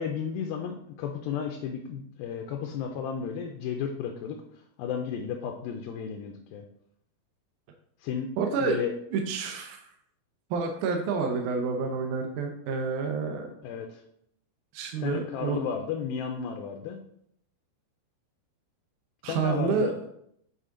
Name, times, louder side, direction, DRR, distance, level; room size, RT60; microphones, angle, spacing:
voice 1, 0.0-4.4 4.8-6.7 8.0-8.9 13.6-14.0 15.0-17.0 19.3-19.9, left 7 dB, 80° left, 3 dB, 2.3 m, -33 dB
voice 2, 8.4-8.8 9.1-9.8 10.5-13.5 14.7-15.6 19.2-19.9, right 5 dB, 80° right, 3 dB, 1.8 m, -29 dB
8.2 x 4.8 x 3.8 m, 0.73 s
omnidirectional pair, 4.6 m